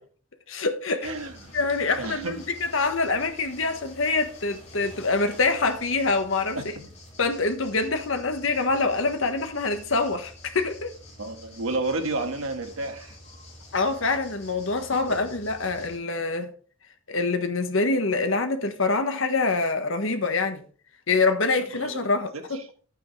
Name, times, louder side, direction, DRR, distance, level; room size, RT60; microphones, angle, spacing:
voice 1, 0.5-1.1 1.5-6.6 7.2-10.9 13.7-16.5 17.1-20.6 21.1-22.6, left 3 dB, 70° left, 1.4 m, -25 dB
sound 1, 1.0-16.0, left 1 dB, 35° left, 4.6 m, -47 dB
voice 2, 1.0-1.5 2.0-2.4 6.5-6.9 11.2-13.2 14.9-15.2 21.6-22.1 22.3-22.7, right 2 dB, 85° right, 1.6 m, -32 dB
11.0 x 9.1 x 3.3 m
head